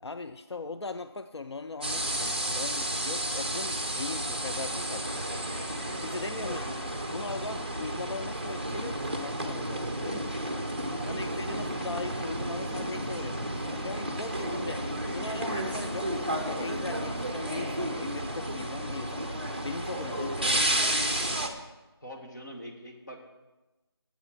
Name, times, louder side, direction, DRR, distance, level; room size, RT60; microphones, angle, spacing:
voice 1, 0.0-5.4 6.0-6.7 7.1-10.3 11.0-14.8 15.1-19.4 19.6-20.9, left 3 dB, 90° left, 9 dB, 0.6 m, -39 dB
sound 1, 1.8-21.5, right 1 dB, 25° right, 0.7 m, -32 dB
voice 2, 10.9-11.6 14.8-14.9 22.0-23.2, equal, 45° left, 0 dB, 1.8 m, -43 dB
12.5 x 8.1 x 4.4 m, 1.1 s
figure-of-eight pair, 180°, 14 cm